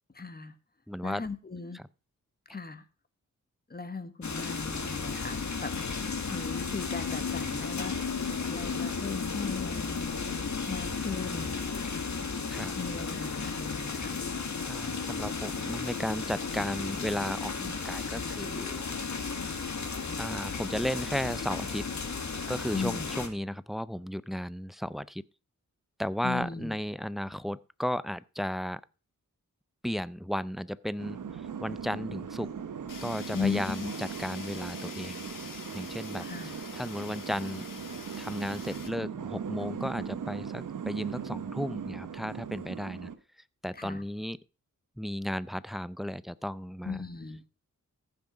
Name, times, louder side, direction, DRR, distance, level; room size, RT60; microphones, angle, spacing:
voice 1, 0.1-0.5 1.0-1.8 2.5-2.8 3.7-5.7 6.3-8.1 8.5-10.0 10.7-11.6 12.7-14.1 22.7-23.1 26.2-26.8 33.3-33.9 36.2-36.6 43.7-44.0 46.8-47.4, left 4 dB, 30° left, 1.4 m, -37 dB
voice 2, 0.9-1.2 1.7-1.8 12.5-12.7 14.7-18.8 20.2-21.8 22.5-25.2 26.0-28.8 29.8-31.2 31.6-32.5 33.0-35.3 35.7-37.7 38.2-43.1 43.6-44.4 45.0-47.0, equal, ahead, 0.4 m, -34 dB
sound 1, 4.2-23.3, left 5 dB, 60° left, 1.7 m, -34 dB
sound 2, 31.0-43.2, right 7 dB, 75° right, 1.1 m, -39 dB
Fire, 32.9-38.9, left 5 dB, 80° left, 2.0 m, -45 dB
14.5 x 6.1 x 5.0 m
wide cardioid pair, 90°, 32 cm